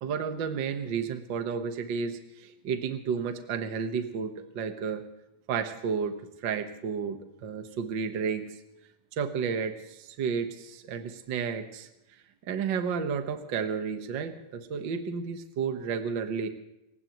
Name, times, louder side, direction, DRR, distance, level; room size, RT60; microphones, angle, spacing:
voice 1, 0.0-5.0 5.5-8.5 9.2-11.9 12.5-16.5, right 6 dB, 70° right, 7 dB, 1.1 m, -32 dB
28.5 x 16.0 x 3.1 m, 0.88 s
omnidirectional pair, 4.1 m